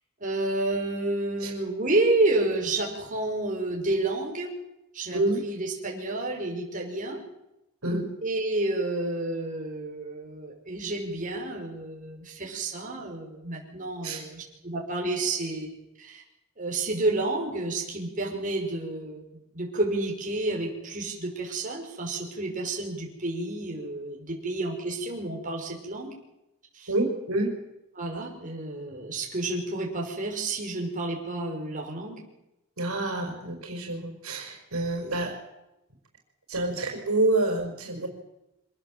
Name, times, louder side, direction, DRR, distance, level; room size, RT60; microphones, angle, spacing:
voice 1, 0.2-4.5 4.9-7.2 8.2-15.7 16.0-16.2 16.6-19.2 19.5-26.1 26.7-26.9 28.0-32.2, right 2 dB, 35° right, 0 dB, 5.6 m, -30 dB
voice 2, 26.9-27.5 32.8-35.3 36.5-38.1, right 2 dB, 80° right, 3 dB, 5.3 m, -27 dB
25.5 x 19.0 x 7.7 m, 0.89 s
head